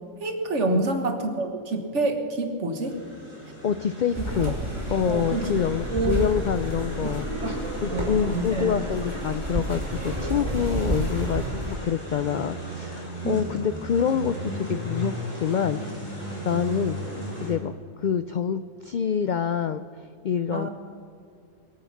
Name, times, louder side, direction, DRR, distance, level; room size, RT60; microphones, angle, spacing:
voice 1, 0.2-3.0 4.2-4.3 5.1-5.5 5.9-6.2 7.3-7.5 7.9-8.7 13.2-13.6 16.5-16.6 20.5-20.7, right 2 dB, 65° right, 5 dB, 1.7 m, -27 dB
sound 1, 2.8-17.5, right 1 dB, 50° left, 4.1 m, -37 dB
voice 2, 3.6-4.5 4.9-7.3 7.8-16.2 16.4-17.0 17.4-17.7 18.0-19.9 20.2-20.7, left 7 dB, 75° left, 11 dB, 0.4 m, -26 dB
sound 2, 4.1-11.8, right 1 dB, 20° right, 2.5 m, -31 dB
22.5 x 8.3 x 5.8 m, 2.5 s
omnidirectional pair, 1.3 m